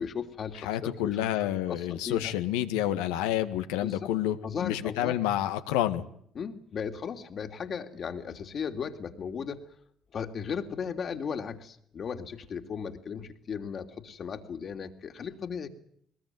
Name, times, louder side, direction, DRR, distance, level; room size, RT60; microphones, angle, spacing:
voice 1, 0.0-2.3 3.8-4.1 4.4-5.2 6.3-9.6 10.1-15.7, left 6 dB, 55° left, 6 dB, 3.2 m, -36 dB
voice 2, 0.6-6.0, left 12 dB, 80° left, 9 dB, 1.8 m, -29 dB
22.0 x 21.5 x 9.3 m, 0.67 s
hypercardioid pair, 50°, 0 cm